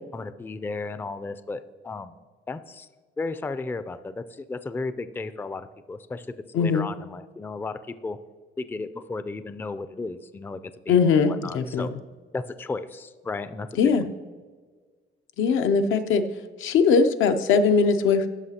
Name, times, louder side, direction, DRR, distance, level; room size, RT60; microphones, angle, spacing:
voice 1, 0.1-2.9 3.2-6.3 6.5-8.2 8.6-10.6 10.9-11.9 12.3-14.1, left 3 dB, 10° left, 12 dB, 0.3 m, -34 dB
voice 2, 6.5-6.9 10.9-11.9 13.8-14.0 15.4-16.2 16.6-18.3, left 5 dB, 80° left, 7 dB, 0.6 m, -20 dB
13.0 x 5.6 x 2.8 m, 1.5 s
cardioid pair, 90°, 20 cm